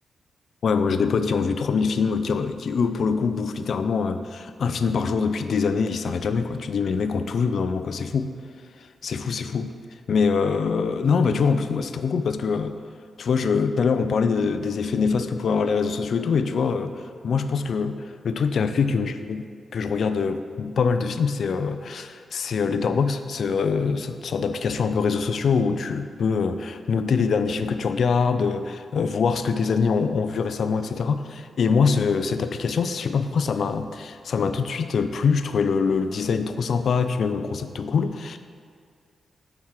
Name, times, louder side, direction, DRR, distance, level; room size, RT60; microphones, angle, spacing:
voice 1, 0.6-8.3 9.0-9.7 10.1-12.8 13.2-19.5 19.7-38.4, left 5 dB, 60° left, 10 dB, 0.3 m, -24 dB
5.8 x 4.4 x 4.6 m, 2.2 s
wide cardioid pair, 140°, 0 cm